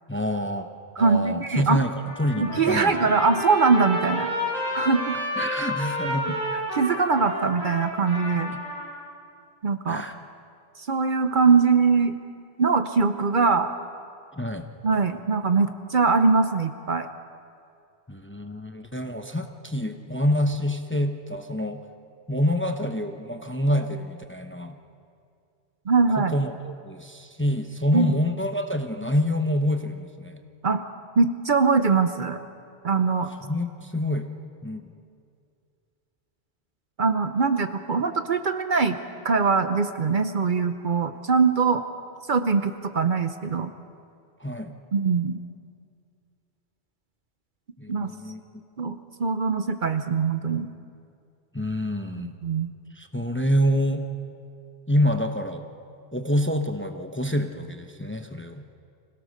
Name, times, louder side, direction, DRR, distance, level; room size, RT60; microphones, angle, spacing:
voice 1, 0.1-0.7 1.0-1.9 2.2-2.9 5.4-6.4 9.9-10.1 14.3-14.7 18.1-21.8 22.3-24.7 26.2-30.4 33.4-34.3 34.6-34.9 44.4-44.7 47.8-48.4 51.5-52.3 52.9-54.0 54.9-55.6 56.1-58.6, equal, 10° left, 6 dB, 0.8 m, -27 dB
voice 2, 1.0-1.8 2.4-4.3 4.7-5.1 6.5-8.5 9.6-10.1 10.9-12.1 12.6-13.7 14.8-17.1 25.9-26.3 27.9-28.1 30.6-30.8 31.2-32.4 32.8-33.3 37.0-39.0 39.2-41.8 42.3-43.7 44.9-45.4 47.9-48.1 48.8-50.7 52.2-52.7, right 4 dB, 50° right, 9 dB, 0.8 m, -22 dB
Trumpet, 2.0-8.9, left 1 dB, 35° right, 8.1 m, -30 dB
25.5 x 16.5 x 6.6 m, 2.4 s
omnidirectional pair, 1.1 m